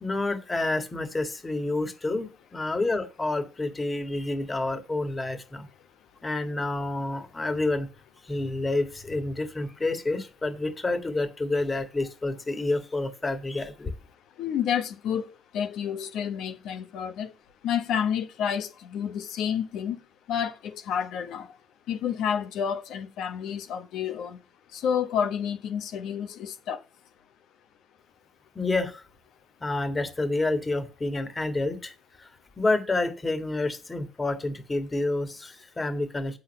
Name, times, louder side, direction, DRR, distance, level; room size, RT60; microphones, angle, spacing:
voice 1, 0.0-5.7 6.2-7.9 8.2-13.9 28.5-29.0 29.6-32.3 32.6-36.4, left 2 dB, 25° left, 1.7 m, -29 dB
voice 2, 14.4-17.3 17.6-20.0 20.3-21.5 21.9-24.4 24.7-26.8, left 8 dB, 85° left, 1.1 m, -29 dB
8.0 x 6.4 x 5.4 m
cardioid pair, 90°, 0 cm